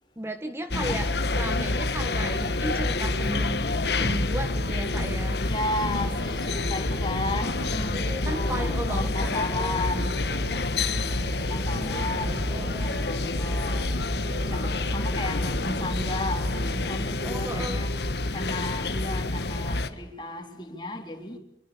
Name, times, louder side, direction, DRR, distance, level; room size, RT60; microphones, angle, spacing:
voice 1, 0.2-5.4 7.9-9.8 11.7-13.0 17.2-17.8, right 1 dB, 15° right, 1.2 m, -35 dB
sound 1, 0.7-19.9, left 2 dB, 70° left, 1.6 m, -28 dB
voice 2, 5.4-10.2 11.5-14.0 14.5-17.9 18.3-21.4, left 2 dB, 25° left, 3.9 m, -34 dB
sound 2, 5.8-17.0, equal, 55° right, 5.6 m, -41 dB
25.0 x 24.0 x 7.1 m
head